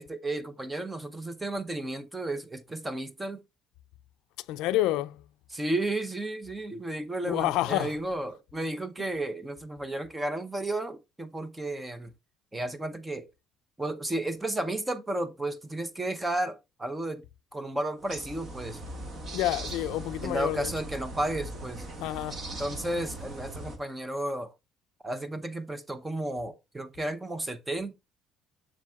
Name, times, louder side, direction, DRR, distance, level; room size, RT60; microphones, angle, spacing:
voice 1, 0.0-3.4 5.5-12.1 12.5-13.3 13.8-17.2 17.5-18.8 20.2-21.9 22.6-24.5 25.0-27.9, right 1 dB, 10° right, 0.7 m, -33 dB
voice 2, 4.5-5.2 7.2-7.9 19.3-20.7 22.0-22.4, left 15 dB, 80° left, 0.4 m, -28 dB
sound 1, 18.0-23.8, right 1 dB, 35° right, 1.5 m, -40 dB
7.4 x 6.3 x 2.3 m
cardioid pair, 145°, 0 cm